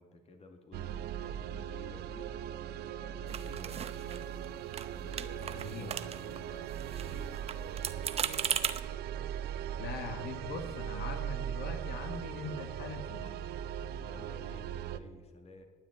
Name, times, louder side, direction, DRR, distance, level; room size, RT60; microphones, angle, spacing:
voice 1, 0.0-2.3 2.7-4.3 4.9-8.5 14.0-15.7, left 2 dB, 40° left, 6 dB, 2.0 m, -53 dB
sound 1, 0.7-15.0, right 10 dB, 75° right, 0.7 m, -39 dB
sound 2, 3.3-4.5 4.7-4.9 5.1-6.4 6.7-8.8, right 8 dB, 35° right, 0.7 m, -37 dB
voice 2, 5.5-5.9 9.8-13.3, left 4 dB, 70° left, 5 dB, 1.5 m, -41 dB
10.0 x 9.4 x 8.7 m, 1.4 s
cardioid pair, 110°, 17 cm